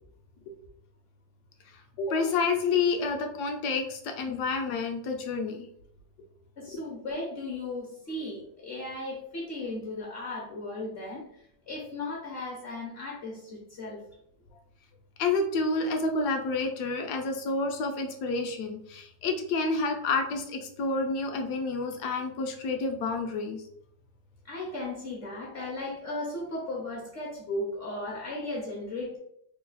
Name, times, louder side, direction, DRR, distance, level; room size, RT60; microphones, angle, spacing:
voice 1, 2.0-5.7 6.7-6.8 15.2-23.6, left 3 dB, 70° left, 4 dB, 1.0 m, -29 dB
voice 2, 6.6-14.0 24.4-29.2, left 2 dB, 55° left, -3 dB, 0.7 m, -36 dB
3.2 x 2.3 x 3.8 m, 0.71 s
omnidirectional pair, 2.0 m